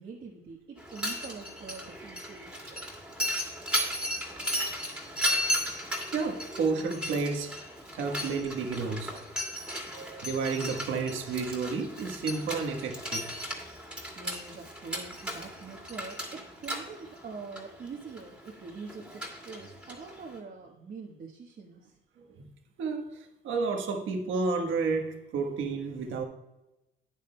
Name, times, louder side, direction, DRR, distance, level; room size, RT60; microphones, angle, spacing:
voice 1, 0.0-2.6 14.2-22.0, right 4 dB, 50° right, -2 dB, 1.4 m, -44 dB
Mechanisms, 0.8-20.4, equal, 5° right, 2.3 m, -36 dB
voice 2, 6.1-7.6 7.9-9.2 9.9-13.3 22.2-22.5 22.8-26.2, right 4 dB, 75° right, 3 dB, 1.4 m, -31 dB
12.0 x 9.1 x 2.3 m, 0.98 s
cardioid pair, 90°, 20 cm